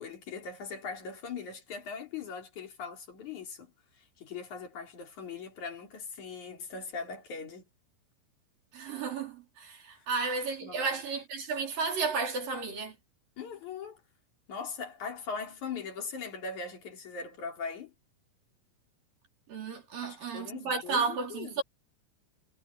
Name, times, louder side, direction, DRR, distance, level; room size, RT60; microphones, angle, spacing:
voice 1, 0.0-7.7 10.0-10.1 10.6-11.0 13.4-14.0 14.5-17.9 20.0-21.6, left 5 dB, 40° left, 5.2 m, -40 dB
voice 2, 8.7-12.9 19.5-21.6, right 4 dB, 50° right, 5.7 m, -33 dB
omnidirectional pair, 5.2 m